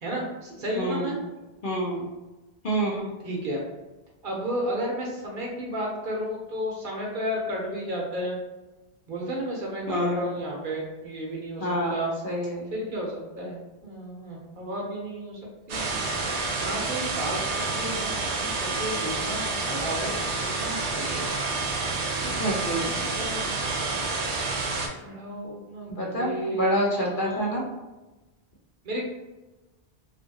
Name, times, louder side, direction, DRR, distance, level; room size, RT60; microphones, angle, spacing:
voice 1, 0.0-1.1 3.2-3.6 4.2-8.4 9.1-12.2 12.7-15.4 15.7-16.0 16.6-20.1 20.4-21.3 22.2-23.6 23.9-24.1 25.0-27.7 28.8-29.0, right 1 dB, 55° right, -2 dB, 0.8 m, -33 dB
voice 2, 0.8-1.2 1.6-2.0 2.6-3.1 9.9-10.4 11.6-12.7 22.3-23.0 25.9-27.6, equal, 55° left, -3 dB, 0.8 m, -28 dB
sound 1, 15.7-24.9, right 3 dB, 90° right, 0.9 m, -29 dB
2.7 x 2.6 x 2.6 m, 1.1 s
omnidirectional pair, 1.1 m